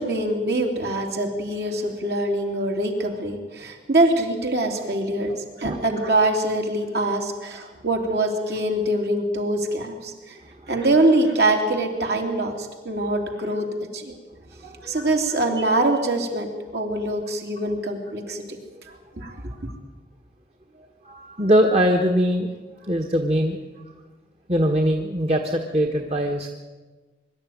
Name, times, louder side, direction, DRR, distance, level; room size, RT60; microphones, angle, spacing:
voice 1, 0.0-10.4 10.7-14.1 14.8-18.4 19.1-19.7, right 1 dB, 65° right, 2 dB, 3.1 m, -24 dB
voice 2, 14.6-15.0 18.9-19.0 20.7-22.5 22.8-23.6 24.5-26.5, equal, 35° right, 3 dB, 1.3 m, -22 dB
23.0 x 12.5 x 9.4 m, 1.3 s
head